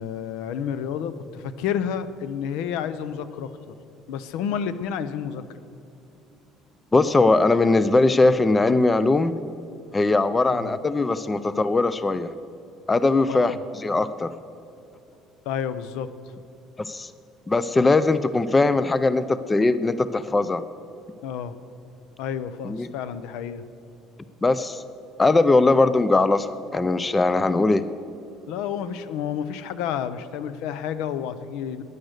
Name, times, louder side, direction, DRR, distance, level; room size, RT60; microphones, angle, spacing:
voice 1, 0.0-3.8 4.1-5.4 10.5-10.8 13.3-13.6 15.4-16.1 21.2-21.6 22.2-23.6 28.5-31.8, left 8 dB, 80° left, 13 dB, 0.7 m, -30 dB
voice 2, 6.9-9.3 9.9-12.3 12.9-14.3 16.8-17.1 17.5-20.6 22.6-22.9 24.4-24.8 25.2-27.8, left 3 dB, 15° left, 13 dB, 0.4 m, -20 dB
15.5 x 10.5 x 6.5 m, 2.7 s
cardioid pair, 160°, 0 cm